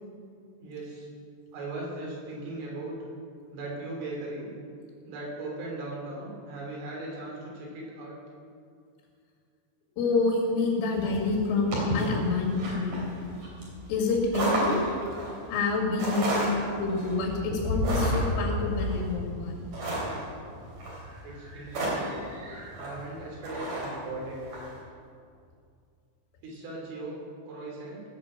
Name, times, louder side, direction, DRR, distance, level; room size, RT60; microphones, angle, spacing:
voice 1, 0.6-1.1 1.5-3.0 3.5-4.5 5.0-8.1 21.2-22.2 22.8-24.5 26.4-28.0, right 2 dB, 80° right, -3 dB, 5.6 m, -38 dB
voice 2, 10.0-13.0 13.9-14.7 15.5-16.5 16.8-19.6, left 3 dB, 85° left, -1 dB, 4.8 m, -27 dB
sound 1, 10.9-24.7, equal, 40° right, 4.4 m, -32 dB
18.0 x 6.7 x 7.4 m, 2.3 s
omnidirectional pair, 5.5 m